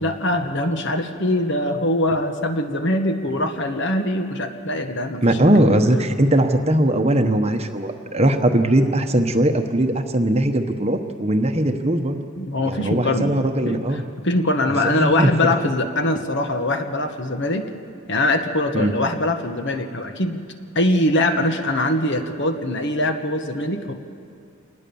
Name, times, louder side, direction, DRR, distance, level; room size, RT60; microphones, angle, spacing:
voice 1, 0.0-5.2 12.4-17.7 18.1-20.4 20.7-23.9, left 1 dB, 50° left, 6 dB, 1.4 m, -22 dB
voice 2, 5.2-12.2 12.6-14.0 14.8-15.3 18.7-18.9, right 1 dB, 30° right, 6 dB, 1.0 m, -19 dB
26.0 x 19.5 x 7.1 m, 2.4 s
head